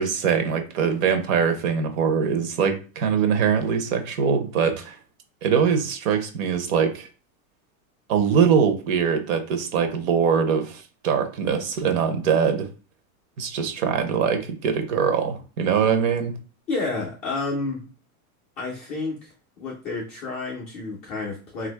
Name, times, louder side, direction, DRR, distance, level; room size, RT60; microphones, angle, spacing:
voice 1, 0.0-5.0 5.4-7.1 8.1-12.7 13.4-16.4, right 6 dB, 65° right, 0.8 m, -22 dB
voice 2, 16.7-17.9 18.6-19.3 19.6-21.7, left 3 dB, 15° left, 0.3 m, -30 dB
2.9 x 2.5 x 3.3 m
supercardioid pair, 165°, 43 cm